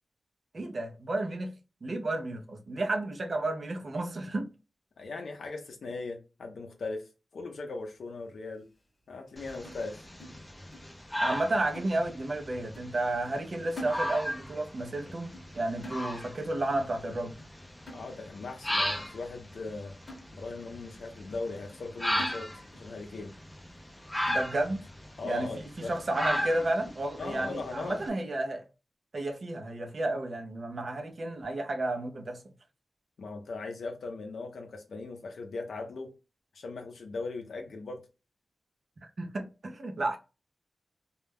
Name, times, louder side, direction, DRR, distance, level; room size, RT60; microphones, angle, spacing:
voice 1, 0.5-1.5 1.8-4.5 11.2-17.4 24.3-24.8 25.2-25.5 25.8-28.6 29.1-32.4 39.0-40.2, right 2 dB, 40° right, 0.5 m, -32 dB
voice 2, 5.0-8.7 9.1-10.0 17.9-19.9 20.3-23.3 25.2-25.9 27.2-28.0 33.2-36.1 36.5-38.0, left 3 dB, 75° left, 0.5 m, -39 dB
sound 1, 9.4-28.1, equal, 10° left, 0.5 m, -37 dB
sound 2, 9.6-11.0 11.2-11.5 11.7-12.4 12.7-13.0 13.3-14.5 14.8-15.0 15.3-15.6 15.8-16.5 16.8-17.1 17.4-17.6 17.9-18.5 19.0-19.1 19.5-19.7 20.1-20.8 21.2-21.3 21.7-21.9 22.2-22.9 23.2-23.3 23.8-23.9 24.3-24.8 25.3-25.4 25.8-26.0, equal, 30° left, 0.9 m, -48 dB
2.2 x 2.1 x 3.3 m
wide cardioid pair, 140°, 0 cm